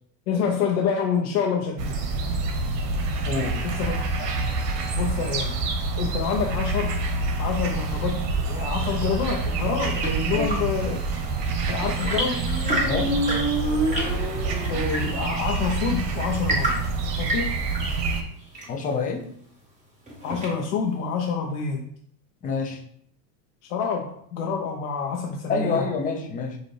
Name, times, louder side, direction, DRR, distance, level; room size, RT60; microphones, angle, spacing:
voice 1, 0.3-1.9 3.6-4.3 4.9-5.5 6.0-7.0 7.4-11.0 11.7-12.4 14.7-16.8 17.2-17.6 20.2-21.9 23.7-25.9, left 6 dB, 60° left, 0 dB, 0.7 m, -27 dB
sound 1, 1.8-18.2, right 3 dB, 70° right, 1.0 m, -27 dB
voice 2, 3.2-3.6 10.3-10.6 12.8-13.2 18.7-19.2 22.4-22.8 25.5-26.6, left 4 dB, 20° left, 2 dB, 0.5 m, -27 dB
Chirp tweet / Engine / Tap, 9.8-20.9, right 1 dB, 15° right, 1.8 m, -33 dB
Motorcycle, 11.8-15.5, right 1 dB, 85° left, 1.5 m, -29 dB
5.2 x 2.5 x 3.1 m, 0.65 s
supercardioid pair, 115°, 49 cm